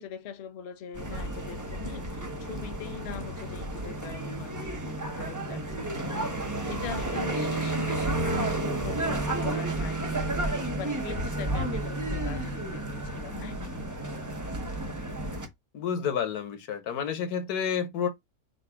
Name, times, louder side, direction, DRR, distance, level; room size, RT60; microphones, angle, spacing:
voice 1, 0.0-13.9, left 7 dB, 55° left, 0.8 m, -42 dB
sound 1, 0.9-15.5, right 1 dB, 20° right, 0.6 m, -31 dB
voice 2, 15.7-18.1, left 7 dB, 85° left, 1.4 m, -30 dB
4.0 x 2.4 x 4.4 m
omnidirectional pair, 1.6 m